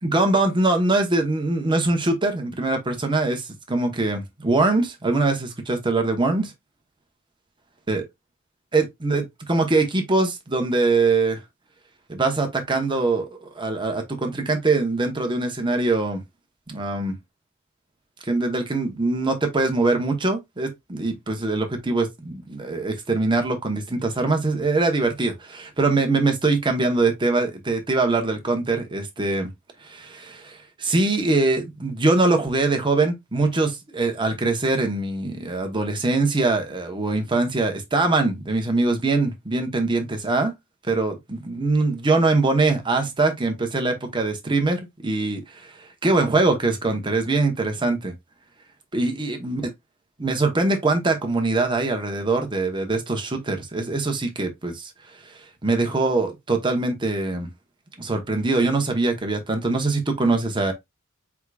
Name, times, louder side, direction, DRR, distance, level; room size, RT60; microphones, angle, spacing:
voice 1, 0.0-6.5 7.9-8.0 8.7-11.4 12.1-16.2 16.7-17.2 18.3-29.5 29.8-40.5 40.8-45.7 46.0-48.1 48.9-49.6 50.2-54.9 55.6-57.5 58.0-60.7, right 3 dB, 25° right, 1.1 m, -23 dB
4.7 x 3.7 x 2.4 m
head